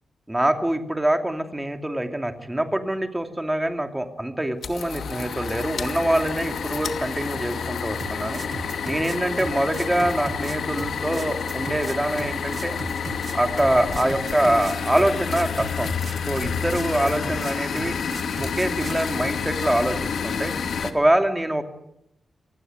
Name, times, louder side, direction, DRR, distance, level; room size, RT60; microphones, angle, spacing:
voice 1, 0.3-8.4 8.8-12.8 13.3-15.9 16.3-18.0 18.4-20.5 20.8-21.6, right 1 dB, 10° right, 6 dB, 2.7 m, -24 dB
sound 1, 4.6-20.9, left 6 dB, 70° left, 2.4 m, -29 dB
sound 2, 8.0-19.0, right 5 dB, 40° right, 1.0 m, -37 dB
27.0 x 20.0 x 9.5 m, 0.81 s
wide cardioid pair, 140°, 0 cm